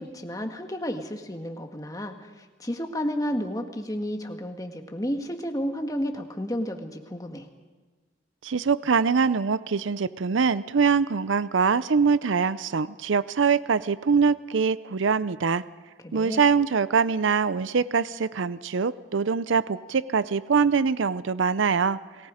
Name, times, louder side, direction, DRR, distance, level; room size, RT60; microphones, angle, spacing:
voice 1, 0.0-7.5 16.0-16.4, equal, 20° left, 5 dB, 1.6 m, -32 dB
voice 2, 8.4-15.6 16.1-22.0, right 5 dB, 85° right, 17 dB, 0.6 m, -23 dB
28.5 x 19.0 x 5.1 m, 1.3 s
head